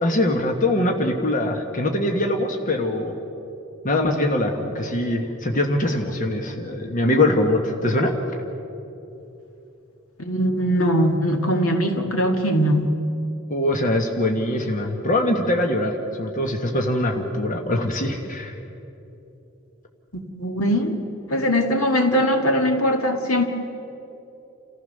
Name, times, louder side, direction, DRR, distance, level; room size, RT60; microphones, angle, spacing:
voice 1, 0.0-3.1 3.8-8.1 13.5-18.5, left 1 dB, 40° left, 3 dB, 1.6 m, -22 dB
voice 2, 10.2-12.9 20.1-21.0 21.3-23.5, equal, 80° left, 4 dB, 1.9 m, -21 dB
29.0 x 14.5 x 6.7 m, 2.9 s
head